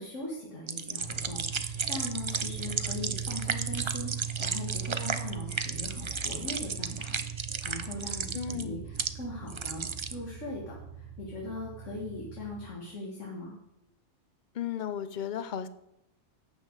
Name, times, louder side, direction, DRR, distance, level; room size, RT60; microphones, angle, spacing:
voice 1, 0.0-7.2 7.6-9.8 10.1-13.5, left 2 dB, 85° left, -3 dB, 2.3 m, -40 dB
sound 1, 0.7-9.1 9.4-10.2, right 5 dB, 40° right, 0.4 m, -34 dB
sound 2, 1.0-12.7, right 7 dB, 85° right, 2.0 m, -40 dB
voice 2, 8.3-8.8 14.5-15.7, left 8 dB, 45° left, 12 dB, 0.7 m, -34 dB
12.0 x 8.5 x 4.8 m, 0.84 s
omnidirectional pair, 1.2 m